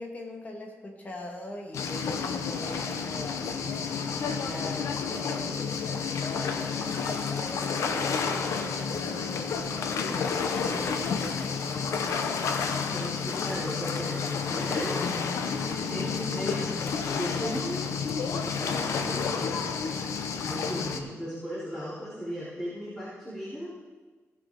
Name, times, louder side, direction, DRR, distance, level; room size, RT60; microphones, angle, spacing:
voice 1, 0.0-12.6, left 1 dB, 30° left, 1 dB, 1.9 m, -42 dB
sound 1, 1.7-21.0, left 5 dB, 85° left, 0.9 m, -30 dB
voice 2, 12.9-15.0 15.9-16.7 17.1-17.9 18.3-23.7, equal, 10° left, -13 dB, 4.1 m, -37 dB
18.0 x 6.5 x 3.9 m, 1.3 s
cardioid pair, 115°, 5 cm